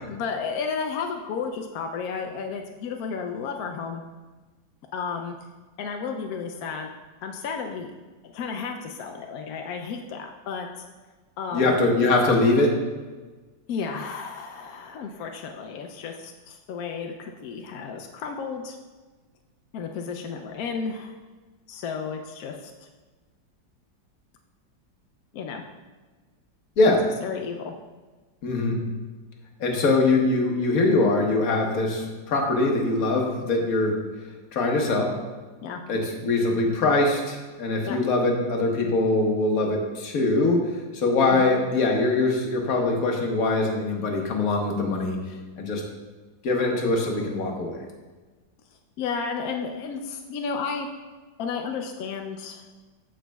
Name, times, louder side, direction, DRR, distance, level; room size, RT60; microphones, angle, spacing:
voice 1, 0.1-4.0 4.9-5.3 5.8-6.9 7.2-7.9 8.2-10.9 11.4-11.8 13.7-18.8 19.7-21.2 21.7-22.7 25.3-25.6 26.9-27.7 35.6-35.8 37.8-38.0 41.3-41.6 49.0-50.9 51.4-52.6, left 5 dB, 75° left, 3 dB, 0.8 m, -32 dB
voice 2, 11.5-12.8 26.8-27.0 28.4-28.8 29.6-34.0 34.5-35.1 35.9-45.2 45.6-45.8 46.4-47.8, left 2 dB, 55° left, 1 dB, 1.4 m, -22 dB
13.5 x 5.1 x 2.3 m, 1.3 s
omnidirectional pair, 2.0 m